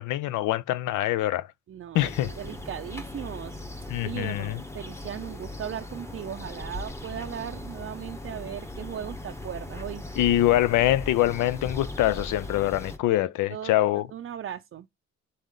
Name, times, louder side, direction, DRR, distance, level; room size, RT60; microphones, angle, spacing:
voice 1, 0.0-1.5 1.9-2.3 3.9-4.6 10.2-14.1, left 14 dB, 80° left, 0.5 m, -24 dB
voice 2, 1.7-3.6 4.0-10.3 13.1-13.2 13.5-14.9, right 10 dB, 45° right, 0.5 m, -38 dB
sound 1, 1.9-13.0, left 1 dB, 10° left, 0.9 m, -39 dB
4.1 x 3.1 x 3.8 m
cardioid pair, 90°, 30 cm